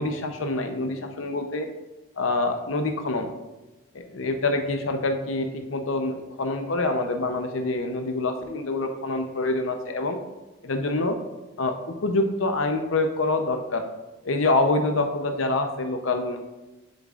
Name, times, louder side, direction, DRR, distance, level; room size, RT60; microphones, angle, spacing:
voice 1, 0.0-1.7 2.2-3.3 3.9-10.2 10.6-11.2 11.6-13.8 14.2-16.4, left 2 dB, 85° left, 6 dB, 0.7 m, -26 dB
7.4 x 7.4 x 2.5 m, 1.1 s
head